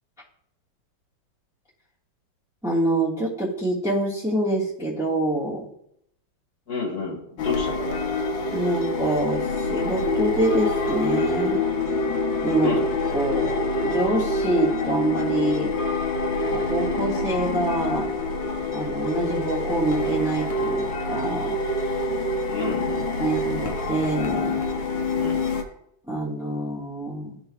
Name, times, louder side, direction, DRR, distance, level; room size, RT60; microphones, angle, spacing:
voice 1, 2.6-5.7 8.5-11.6 12.4-12.8 13.1-15.7 16.5-18.1 18.7-21.6 23.2-24.6 26.1-27.4, right 1 dB, ahead, -7 dB, 1.2 m, -26 dB
voice 2, 6.7-8.0 12.6-12.8 22.5-23.3 25.2-25.5, left 3 dB, 50° left, -2 dB, 2.2 m, -30 dB
sound 1, 7.4-25.6, left 2 dB, 75° left, 1.5 m, -26 dB
12.5 x 4.5 x 2.3 m, 0.74 s
omnidirectional pair, 2.1 m